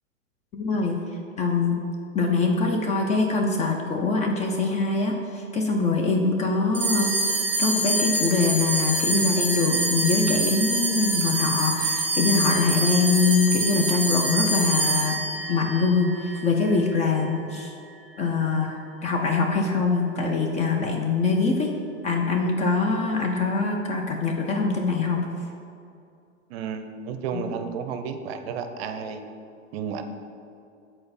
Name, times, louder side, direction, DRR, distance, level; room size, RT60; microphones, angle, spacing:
voice 1, 0.5-1.0 1.4-1.9 2.1-7.1 7.6-15.2 15.5-17.7 18.2-21.7 22.0-25.3 27.3-27.4, left 4 dB, 20° left, 1 dB, 0.4 m, -23 dB
sound 1, 6.7-17.4, right 2 dB, 5° right, 1.0 m, -26 dB
voice 2, 26.5-29.2 29.7-30.0, right 6 dB, 50° right, 8 dB, 0.6 m, -32 dB
6.6 x 4.3 x 4.1 m, 2.5 s
hypercardioid pair, 105°, 38 cm